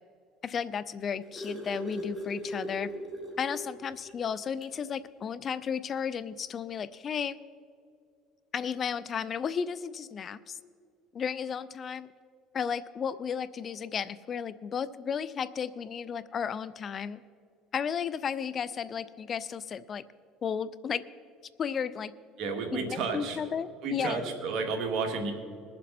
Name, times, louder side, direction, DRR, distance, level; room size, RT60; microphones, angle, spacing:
voice 1, 0.4-2.9 3.4-7.4 8.5-10.6 11.1-12.1 12.5-17.2 17.7-20.0 20.4-21.0 21.6-22.1 22.7-24.2, left 7 dB, 40° left, 17 dB, 0.4 m, -33 dB
sound 1, 0.8-3.7 4.1-4.2 4.6-4.8 5.9-6.0, right 1 dB, ahead, 3.5 m, -39 dB
voice 2, 22.4-23.4 23.8-25.3, right 4 dB, 60° right, 3 dB, 2.3 m, -31 dB
22.0 x 7.5 x 4.3 m, 2.3 s
supercardioid pair, 95°, 0 cm